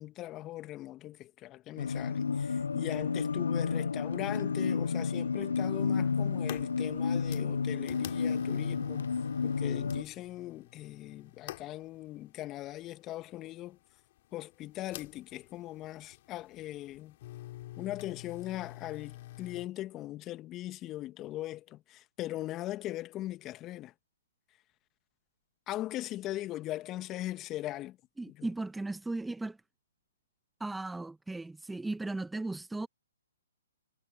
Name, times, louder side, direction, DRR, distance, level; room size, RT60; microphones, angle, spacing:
voice 1, 0.0-9.1 9.4-13.8 14.3-17.1 17.8-23.9 25.7-28.0 28.3-28.5, left 15 dB, 25° left, 1.7 m, -40 dB
sound 1, 1.8-10.0, left 5 dB, 75° left, 0.4 m, -31 dB
sound 2, 5.6-19.7, left 16 dB, 45° left, 3.5 m, -49 dB
voice 2, 28.2-29.6 30.6-32.9, right 2 dB, 5° right, 1.1 m, -36 dB
hypercardioid pair, 130°, 0 cm